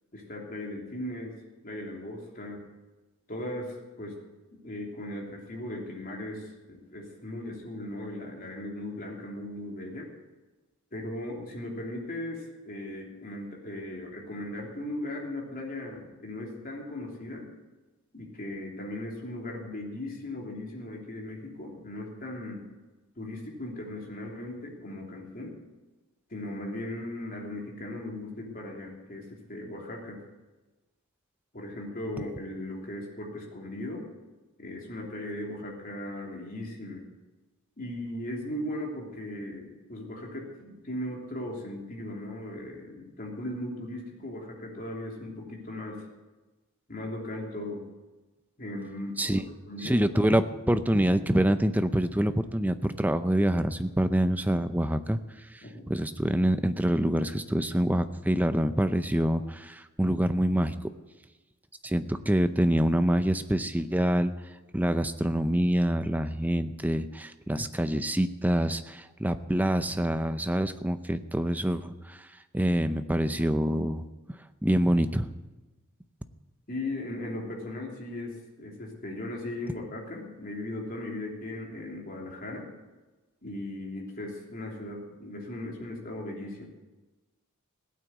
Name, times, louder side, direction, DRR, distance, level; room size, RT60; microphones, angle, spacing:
voice 1, 0.1-1.3 1.6-2.6 3.3-4.2 4.5-10.1 10.9-17.5 18.1-22.6 23.1-25.6 26.3-30.2 31.5-34.1 34.6-37.0 37.8-46.0 46.9-47.9 48.6-50.1 55.6-55.9 76.7-82.7 83.4-86.6, left 1 dB, 40° left, -1 dB, 3.2 m, -38 dB
voice 2, 49.8-55.2 55.5-60.7 61.8-64.3 64.7-72.3 72.5-75.3, right 1 dB, 10° right, 10 dB, 0.6 m, -26 dB
16.5 x 9.2 x 8.1 m, 1.2 s
head